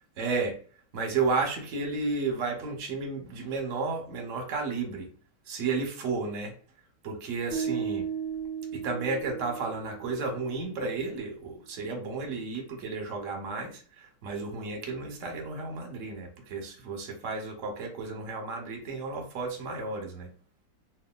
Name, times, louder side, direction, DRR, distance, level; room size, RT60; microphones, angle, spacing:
voice 1, 0.2-0.6 0.9-5.1 5.5-6.5 7.0-8.1 8.7-13.8 14.2-20.3, right 4 dB, 55° right, 0.9 m, -32 dB
sound 1, 7.5-10.7, right 7 dB, 60° left, 1.2 m, -35 dB
3.3 x 2.3 x 2.2 m
omnidirectional pair, 2.2 m